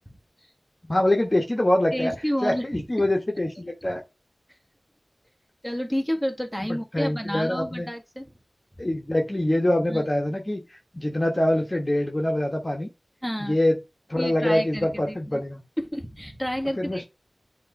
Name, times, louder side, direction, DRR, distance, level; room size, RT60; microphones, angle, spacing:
voice 1, 0.9-2.1 2.4-4.0 6.7-7.9 8.8-10.6 10.9-12.9 13.4-13.8 14.1-15.6 16.8-17.0, left 1 dB, 30° left, 1.3 m, -24 dB
voice 2, 1.9-3.1 5.6-8.3 8.8-8.9 9.9-10.0 13.2-13.6 14.2-15.4 15.8-17.0, equal, 5° left, 1.7 m, -30 dB
7.5 x 3.1 x 5.2 m
cardioid pair, 40°, 0 cm